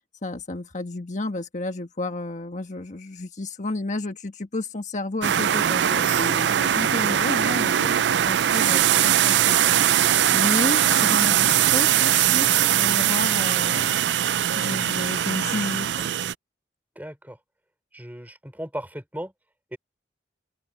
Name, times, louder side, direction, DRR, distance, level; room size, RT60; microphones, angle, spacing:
voice 1, 0.2-14.0 14.6-16.1, left 2 dB, 45° left, 1.4 m, -31 dB
sound 1, 5.2-16.3, right 10 dB, 75° right, 0.4 m, -21 dB
voice 2, 17.0-17.4 17.9-19.3 19.7-19.8, equal, 10° right, 4.0 m, -36 dB
open air
head